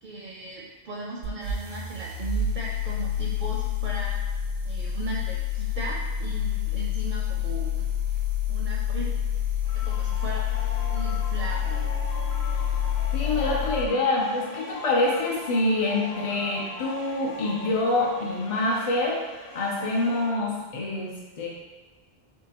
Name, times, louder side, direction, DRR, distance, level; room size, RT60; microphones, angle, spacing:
voice 1, 0.0-4.2 4.6-7.9 8.5-9.1 9.7-10.4 10.9-11.9, right 3 dB, 60° right, -3 dB, 0.6 m, -37 dB
sound 1, 1.2-13.9, left 8 dB, 85° right, 0.9 m, -28 dB
sound 2, 9.6-20.3, left 2 dB, 65° left, 1.0 m, -40 dB
voice 2, 13.1-19.2 19.5-21.5, left 2 dB, 50° left, -3 dB, 0.4 m, -26 dB
3.6 x 3.3 x 2.9 m, 1.3 s
omnidirectional pair, 1.1 m